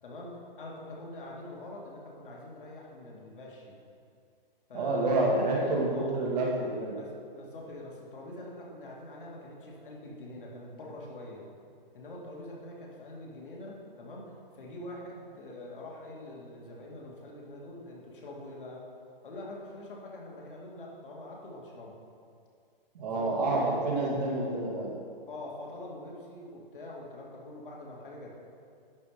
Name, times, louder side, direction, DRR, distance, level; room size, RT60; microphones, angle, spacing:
voice 1, 0.0-3.8 4.7-6.2 6.9-11.5 11.9-18.8 19.2-22.0 23.1-23.8 25.3-28.3, left 1 dB, 60° left, -3 dB, 2.5 m, -44 dB
voice 2, 4.7-7.0 22.9-24.9, right 2 dB, 45° right, -3 dB, 2.1 m, -28 dB
11.5 x 5.0 x 5.1 m, 2.3 s
hypercardioid pair, 170°, 29 cm